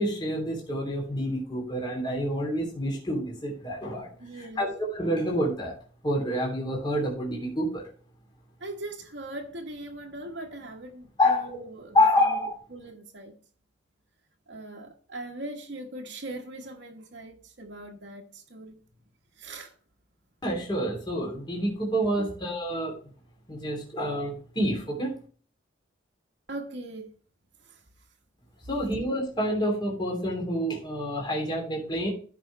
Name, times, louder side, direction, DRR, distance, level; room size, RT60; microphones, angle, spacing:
voice 1, 0.0-4.1 4.4-5.7 6.0-7.8 11.2-11.6 11.9-12.6 20.4-22.9 23.5-25.2 28.7-32.1, equal, 25° left, 3.0 m, -28 dB
voice 2, 4.2-4.7 8.6-12.4 12.7-13.4 14.5-18.8 19.4-19.7 22.1-22.3 26.5-27.1 27.6-27.8, right 2 dB, 60° right, 1.4 m, -40 dB
15.0 x 5.4 x 3.2 m
head